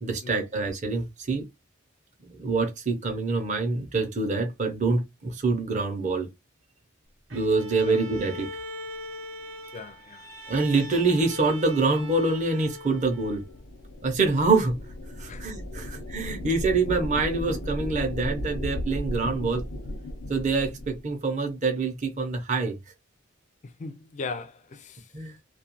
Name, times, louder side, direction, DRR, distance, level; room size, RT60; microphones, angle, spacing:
voice 1, 0.0-1.4 2.3-6.3 7.3-8.5 10.5-13.4 14.0-14.8 15.2-19.6 20.3-22.8 25.1-25.4, right 3 dB, 35° right, 0.6 m, -25 dB
Bowed string instrument, 7.3-13.6, left 1 dB, 75° right, 0.8 m, -41 dB
voice 2, 9.7-10.3 15.3-15.5 15.8-16.0 23.6-25.1, left 4 dB, 35° left, 0.4 m, -39 dB
sound 1, 13.0-21.0, left 1 dB, 90° left, 0.7 m, -35 dB
2.4 x 2.2 x 2.9 m
head